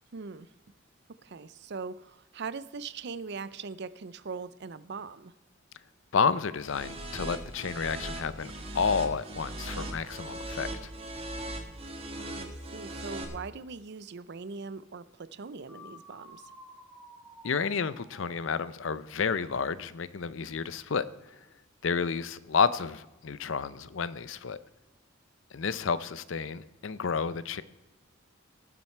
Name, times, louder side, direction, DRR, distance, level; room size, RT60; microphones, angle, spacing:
voice 1, 0.1-0.5 1.2-5.3 12.1-16.5, right 4 dB, 55° right, 0.5 m, -41 dB
voice 2, 6.1-10.9 17.4-21.0 21.8-24.6 25.5-27.6, left 5 dB, 65° left, 0.6 m, -30 dB
sound 1, 6.6-13.2, right 1 dB, 30° right, 1.7 m, -39 dB
sound 2, 15.7-19.5, equal, 5° right, 2.4 m, -53 dB
18.5 x 7.5 x 4.5 m
head